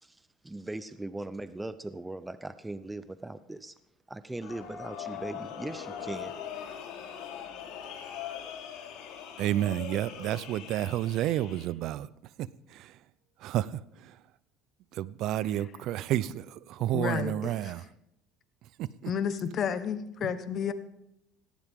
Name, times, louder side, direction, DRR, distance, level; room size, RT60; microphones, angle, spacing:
voice 1, 0.0-3.7 4.1-6.3, right 2 dB, 10° right, 0.7 m, -39 dB
sound 1, 4.4-11.6, left 8 dB, 70° left, 3.6 m, -41 dB
voice 2, 9.4-13.1 13.4-14.3 14.9-17.9 18.6-19.1 20.2-20.3, right 13 dB, 60° right, 0.6 m, -31 dB
voice 3, 16.9-17.3 19.1-20.7, left 7 dB, 45° left, 1.3 m, -31 dB
17.5 x 16.5 x 3.7 m
supercardioid pair, 115°, 0 cm